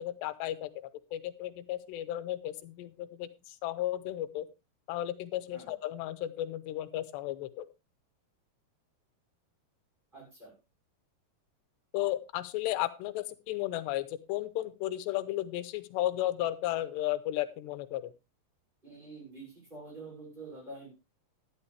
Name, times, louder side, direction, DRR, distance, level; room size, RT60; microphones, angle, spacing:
voice 1, 0.0-4.5 4.9-7.7 11.9-18.0, left 14 dB, 90° left, 13 dB, 3.0 m, -34 dB
voice 2, 10.1-10.5 18.8-20.9, right 3 dB, 10° right, -2 dB, 6.4 m, -47 dB
12.5 x 11.0 x 3.3 m, 0.27 s
omnidirectional pair, 4.9 m